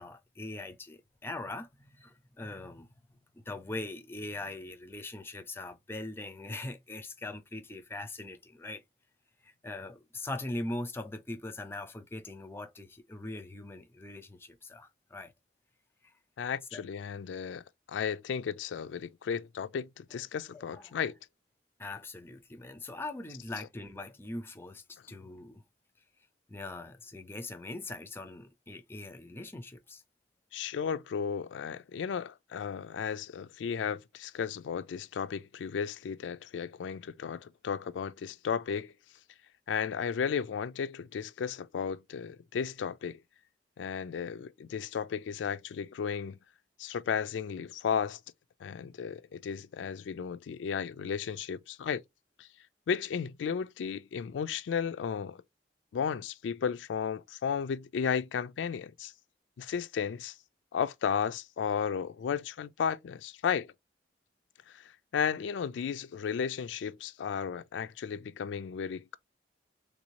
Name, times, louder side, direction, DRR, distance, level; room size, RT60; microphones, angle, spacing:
voice 1, 0.0-2.9 3.3-8.8 9.4-15.3 16.0-16.1 16.7-16.8 20.1-20.2 20.5-21.0 21.8-25.6 26.5-30.0, left 2 dB, 15° left, 0.4 m, -41 dB
voice 2, 16.4-17.6 17.9-21.1 30.5-38.9 39.7-43.2 43.8-46.4 46.8-48.2 48.6-52.0 52.4-52.5 52.9-55.4 55.9-59.1 59.6-60.3 60.7-63.7 64.7-69.2, left 7 dB, 85° left, 0.3 m, -34 dB
3.4 x 2.6 x 2.9 m
head